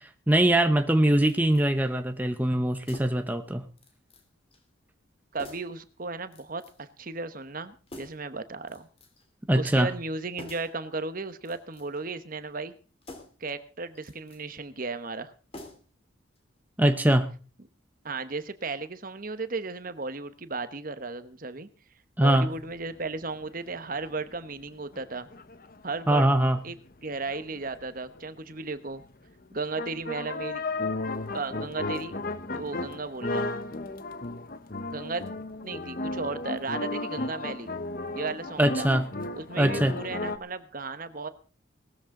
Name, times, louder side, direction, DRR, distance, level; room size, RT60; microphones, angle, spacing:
voice 1, 0.3-3.6 9.5-9.9 16.8-17.3 22.2-22.5 26.1-26.6 38.6-39.1 39.6-39.9, right 1 dB, 10° right, 7 dB, 0.8 m, -22 dB
sound 1, 1.2-1.7 2.8-3.3 3.8-4.3 4.5-4.6 5.4-5.8 6.3-6.9 7.9-8.3 8.7-9.3 10.4-10.8 11.4-12.1 13.0-13.5 13.9-14.4 15.5-16.0 16.3-16.4, left 1 dB, 30° left, 3.2 m, -47 dB
voice 2, 5.3-8.9 9.5-12.7 13.4-15.3 18.0-21.7 22.2-25.3 25.8-26.2 26.6-26.7 27.0-29.0 29.5-30.6 31.3-32.1 32.5-33.5 34.9-35.2 35.6-37.7 38.1-38.9 39.4-41.3, right 3 dB, 45° right, 11 dB, 1.1 m, -35 dB
sound 2, 22.3-23.0 23.2-24.0 24.3-24.4 24.6-24.7 24.9-26.9 27.3-28.6 29.1-29.2 29.8-40.4, left 2 dB, 45° left, 1.0 m, -34 dB
18.5 x 13.5 x 3.8 m, 0.36 s
head